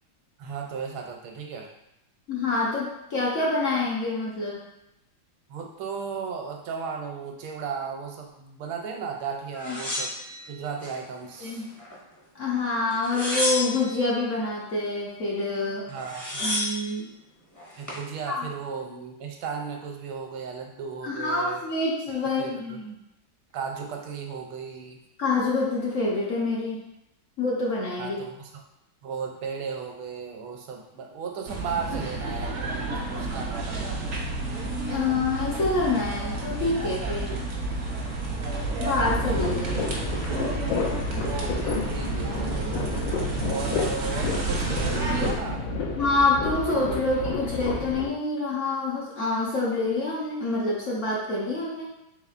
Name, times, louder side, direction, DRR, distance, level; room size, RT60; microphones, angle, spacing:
voice 1, 0.4-1.7 5.5-10.1 10.5-11.6 15.9-16.6 17.8-21.6 22.4-22.8 23.5-25.0 28.0-28.6 29.0-34.2 39.6-39.7 41.2-42.8 43.4-45.6, right 6 dB, 80° right, 2 dB, 1.4 m, -35 dB
voice 2, 2.3-4.6 9.7-9.8 11.4-11.7 12.3-15.9 16.4-17.1 18.3-18.5 21.0-22.9 25.2-26.8 27.4-28.2 34.9-37.4 38.8-39.8 46.0-51.9, left 3 dB, 60° left, -5 dB, 0.8 m, -27 dB
sound 1, 9.6-11.0 11.4-12.2 12.9-14.0 15.6-15.7 15.9-16.9 17.6-18.1, left 1 dB, 20° left, 0.5 m, -31 dB
sound 2, 31.5-45.3, right 2 dB, 65° right, 0.7 m, -30 dB
sound 3, 39.0-48.1, left 3 dB, 80° left, 1.5 m, -31 dB
4.2 x 3.6 x 2.4 m, 0.86 s
omnidirectional pair, 2.2 m